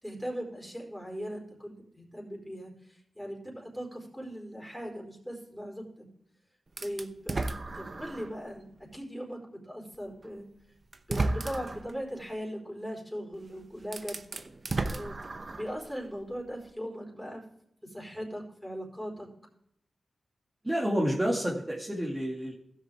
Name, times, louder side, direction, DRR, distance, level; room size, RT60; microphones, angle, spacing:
voice 1, 0.0-5.8 6.8-8.7 8.9-10.5 11.1-14.2 14.9-17.4 17.8-19.3, equal, 5° left, -1 dB, 4.3 m, -39 dB
sound 1, 6.8-8.4 8.9-9.0 10.2-10.3 10.9-11.9 13.3-13.4 13.8-15.8, right 3 dB, 50° right, 0.8 m, -33 dB
voice 2, 20.6-22.5, equal, 20° right, -4 dB, 2.1 m, -29 dB
15.5 x 6.5 x 3.5 m, 0.74 s
cardioid pair, 50°, 0 cm